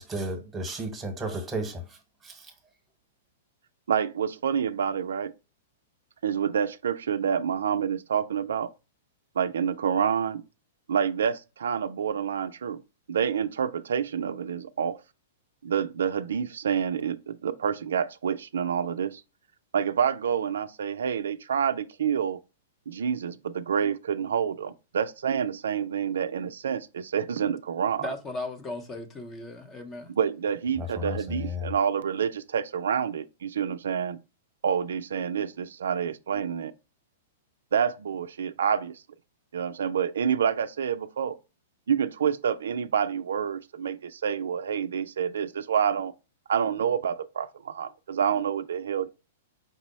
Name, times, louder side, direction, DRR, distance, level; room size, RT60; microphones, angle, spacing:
voice 1, 0.0-1.8 2.2-2.3 30.8-31.7, equal, 10° right, 1.0 m, -33 dB
voice 2, 3.9-5.3 6.2-8.7 9.4-10.4 10.9-12.8 13.1-15.0 15.6-19.2 19.7-22.4 22.9-28.1 30.2-34.2 34.6-36.7 37.7-39.0 39.5-41.3 41.9-46.1 46.5-49.1, right 7 dB, 80° right, 0.3 m, -28 dB
voice 3, 28.0-30.1, left 2 dB, 20° left, 0.7 m, -36 dB
5.2 x 2.0 x 4.1 m
hypercardioid pair, 135°, 0 cm